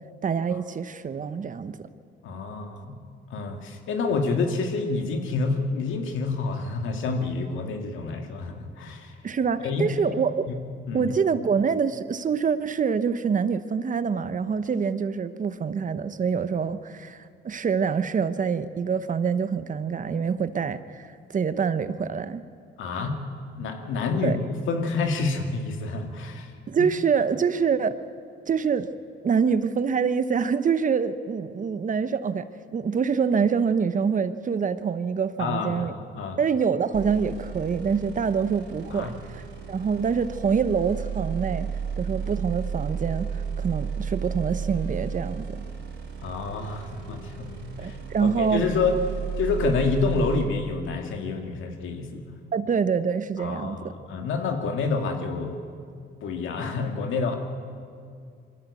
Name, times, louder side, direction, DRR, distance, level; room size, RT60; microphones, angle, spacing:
voice 1, 0.2-1.9 9.2-10.5 10.9-17.2 17.4-21.1 21.3-22.4 24.2-24.4 26.7-27.9 28.5-28.9 29.2-32.4 32.7-35.9 36.4-39.4 39.7-41.7 42.0-45.7 47.8-48.6 52.5-53.9, right 6 dB, 40° right, 13 dB, 0.9 m, -25 dB
voice 2, 2.2-3.0 3.3-9.2 9.6-10.2 10.5-10.6 10.9-11.1 22.8-23.2 23.6-24.4 24.7-26.5 35.4-36.4 38.9-39.1 46.2-49.0 49.4-52.3 53.4-55.6 56.2-57.3, left 4 dB, 80° left, 4 dB, 2.2 m, -28 dB
sound 1, 36.9-50.4, right 6 dB, 65° right, 4.7 m, -33 dB
23.0 x 14.5 x 8.4 m, 2.3 s
cardioid pair, 90°, 20 cm